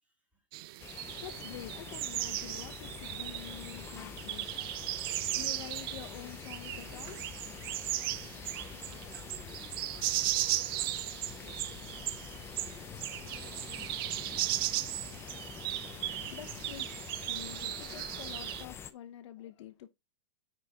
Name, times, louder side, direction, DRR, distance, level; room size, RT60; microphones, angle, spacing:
voice 1, 0.0-0.7 8.5-14.6, equal, 10° right, 3.0 m, -60 dB
sound 1, 0.5-18.6, right 17 dB, 45° right, 0.4 m, -37 dB
sound 2, 0.8-18.9, left 7 dB, 15° left, 0.5 m, -46 dB
voice 2, 1.2-8.0 15.6-16.9 17.3-19.9, left 11 dB, 65° left, 1.0 m, -48 dB
9.5 x 4.4 x 3.5 m
supercardioid pair, 150°, 16 cm